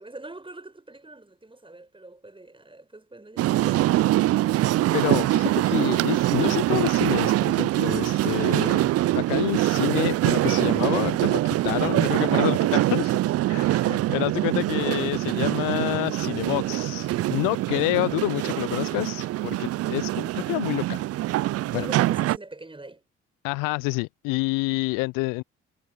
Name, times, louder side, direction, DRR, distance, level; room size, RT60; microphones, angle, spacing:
voice 1, 0.0-4.0 4.4-4.8 21.6-23.0, right 2 dB, 15° right, 6.9 m, -43 dB
sound 1, 3.4-22.4, right 15 dB, 45° right, 0.5 m, -24 dB
voice 2, 4.9-13.2 13.5-21.0 21.7-21.9 23.4-25.4, left 28 dB, 65° left, 0.6 m, -28 dB
hypercardioid pair, 50°, 35 cm